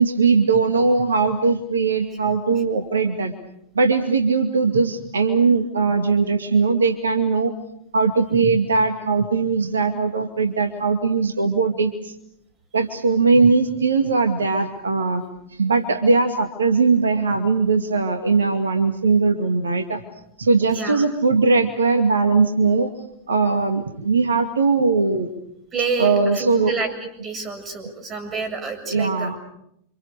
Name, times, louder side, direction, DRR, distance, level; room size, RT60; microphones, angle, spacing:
voice 1, 0.0-3.3 3.7-7.5 7.9-12.1 12.7-15.2 15.5-20.0 20.4-22.9 23.3-25.3 26.0-26.7 28.9-29.4, right 4 dB, 70° right, 7 dB, 2.3 m, -20 dB
voice 2, 20.6-21.0 25.7-29.3, right 3 dB, 25° right, 6 dB, 7.6 m, -29 dB
30.0 x 26.5 x 6.7 m, 0.76 s
figure-of-eight pair, 90°, 0 cm